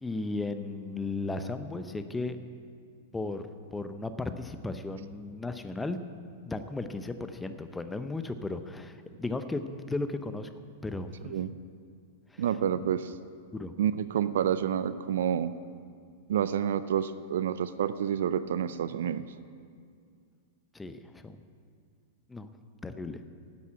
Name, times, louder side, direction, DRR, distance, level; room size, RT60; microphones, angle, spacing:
voice 1, 0.0-2.4 3.1-6.0 6.5-10.5 10.8-11.4 12.3-12.4 13.5-13.8 20.7-21.4 22.3-22.5 22.8-23.2, left 3 dB, 10° left, 9 dB, 0.7 m, -35 dB
voice 2, 12.4-13.1 13.8-15.5 16.3-19.2, right 9 dB, 70° right, 14 dB, 0.5 m, -28 dB
10.5 x 8.3 x 8.7 m, 2.2 s
hypercardioid pair, 105°, 0 cm